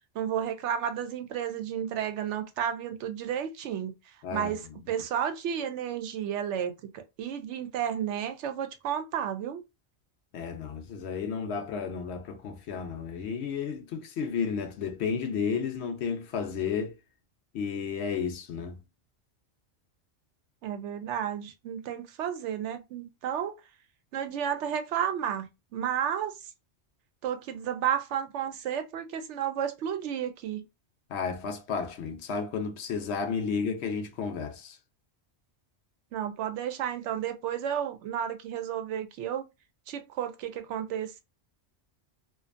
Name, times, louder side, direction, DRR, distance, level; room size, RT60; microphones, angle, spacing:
voice 1, 0.1-3.9 4.3-4.6 4.9-9.6 20.6-23.6 24.1-26.3 27.2-30.6 36.1-39.5 39.9-41.2, right 9 dB, 80° right, 0.9 m, -32 dB
voice 2, 4.2-4.7 10.3-16.9 17.5-18.8 31.1-34.8, left 6 dB, 75° left, 0.8 m, -32 dB
2.5 x 2.3 x 2.5 m
omnidirectional pair, 1.2 m